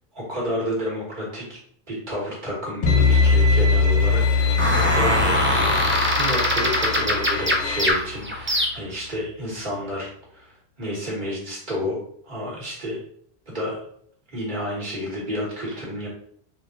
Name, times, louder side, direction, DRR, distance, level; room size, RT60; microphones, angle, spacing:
voice 1, 0.1-1.4 1.9-5.7 6.2-10.5 10.8-12.0 12.2-13.0 13.5-13.8 14.3-16.1, equal, 50° right, -5 dB, 1.4 m, -30 dB
sound 1, 2.8-8.2, left 4 dB, 50° left, 0.7 m, -22 dB
Bowed string instrument, 2.9-7.9, left 3 dB, 85° left, 0.8 m, -30 dB
sound 2, 4.6-9.1, equal, 20° right, 0.4 m, -22 dB
3.6 x 2.3 x 3.8 m, 0.62 s
omnidirectional pair, 1.1 m